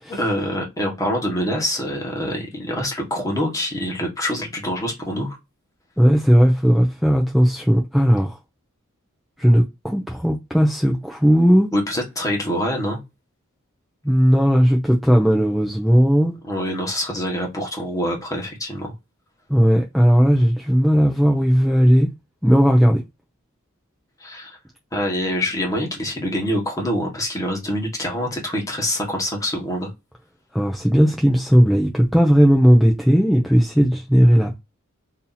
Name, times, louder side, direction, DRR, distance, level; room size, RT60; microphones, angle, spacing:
voice 1, 0.1-5.4 11.7-13.0 16.5-18.9 24.2-24.6 24.9-29.9, equal, 15° left, 1.2 m, -25 dB
voice 2, 6.0-8.4 9.4-11.7 14.0-16.3 19.5-22.1 22.4-23.0 30.5-34.6, equal, ahead, 0.5 m, -16 dB
2.8 x 2.8 x 3.8 m
head